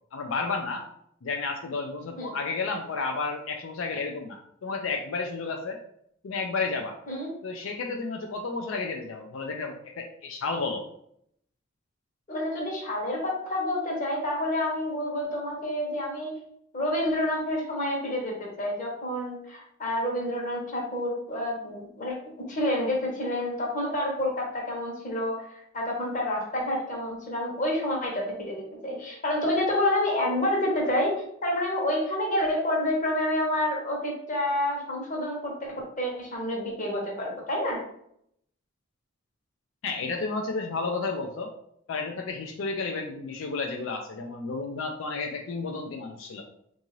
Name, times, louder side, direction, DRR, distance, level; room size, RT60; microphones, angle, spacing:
voice 1, 0.1-0.9 1.2-5.8 6.2-7.0 7.4-10.8 39.8-41.5 41.9-46.4, left 4 dB, 90° left, 3 dB, 0.4 m, -32 dB
voice 2, 12.3-16.4 16.7-22.2 22.5-25.5 25.7-37.8, left 1 dB, 40° left, -1 dB, 1.0 m, -28 dB
3.6 x 2.6 x 3.0 m, 0.71 s
head